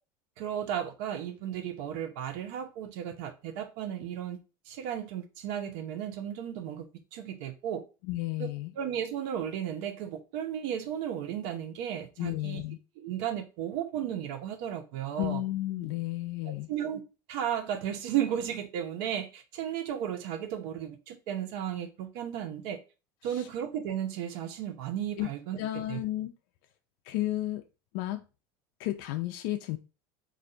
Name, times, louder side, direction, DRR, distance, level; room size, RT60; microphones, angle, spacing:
voice 1, 0.4-4.4 4.7-6.9 7.1-7.8 8.4-8.5 8.8-12.6 13.0-15.4 16.7-17.0 17.3-22.8 23.2-25.6 25.9-26.0, right 10 dB, 75° right, 0.8 m, -34 dB
voice 2, 8.0-8.7 12.2-12.8 15.2-16.7 23.2-23.5 25.2-25.3 25.6-26.3 27.0-27.6 27.9-28.2 28.8-29.8, left 16 dB, 75° left, 0.4 m, -32 dB
4.0 x 2.5 x 4.2 m
supercardioid pair, 120°, 12 cm